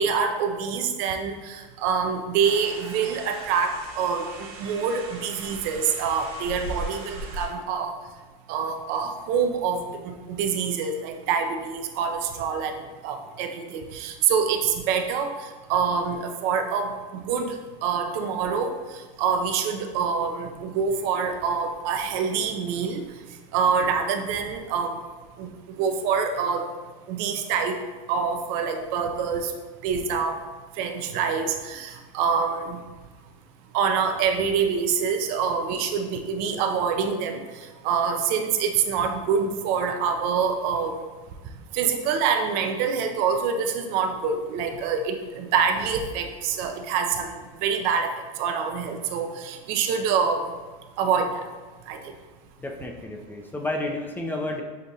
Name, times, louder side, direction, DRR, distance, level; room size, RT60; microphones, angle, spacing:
voice 1, 0.0-8.0 8.5-17.6 17.8-18.7 19.2-23.0 23.5-24.9 25.4-25.5 25.8-26.7 27.1-27.8 28.1-29.5 29.8-30.4 30.8-32.8 33.7-37.4 37.8-41.0 41.7-50.5 51.0-51.4 51.9-52.1, right 6 dB, 60° right, 5 dB, 0.5 m, -26 dB
sound 1, 2.4-7.5, right 2 dB, 85° right, 1.0 m, -38 dB
voice 2, 52.6-54.6, left 2 dB, 10° left, 2 dB, 0.4 m, -31 dB
6.4 x 2.5 x 2.7 m, 1.3 s
supercardioid pair, 115°, 18 cm